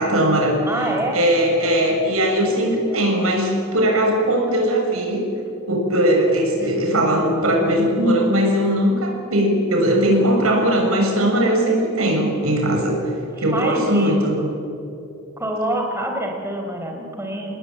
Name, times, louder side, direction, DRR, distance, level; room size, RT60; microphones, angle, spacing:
voice 1, 0.0-5.2 5.7-12.9 13.4-14.4, right 1 dB, 90° right, 1 dB, 6.8 m, -19 dB
voice 2, 0.7-1.2 6.6-7.0 13.4-14.5 15.4-17.6, right 1 dB, 10° right, 2 dB, 4.3 m, -27 dB
28.5 x 19.5 x 9.1 m, 2.6 s
head